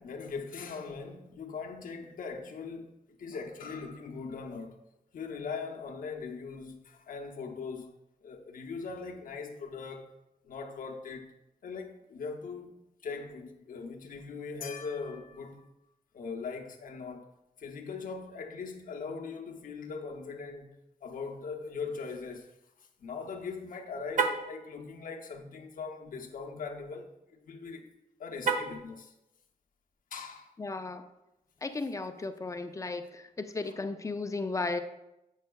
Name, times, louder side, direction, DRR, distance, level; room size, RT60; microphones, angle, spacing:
voice 1, 0.0-4.8 5.1-10.1 10.4-11.3 11.6-15.7 16.1-17.3 17.6-20.7 21.0-27.9 28.2-29.1 30.1-30.5 33.7-33.8, left 5 dB, 65° left, 0.6 m, -40 dB
Car, 24.1-24.5 28.4-28.9, right 4 dB, 60° right, 0.6 m, -29 dB
voice 2, 30.6-31.0 31.6-34.8, left 3 dB, 20° left, 0.3 m, -35 dB
7.9 x 5.4 x 2.2 m
wide cardioid pair, 160°, 15 cm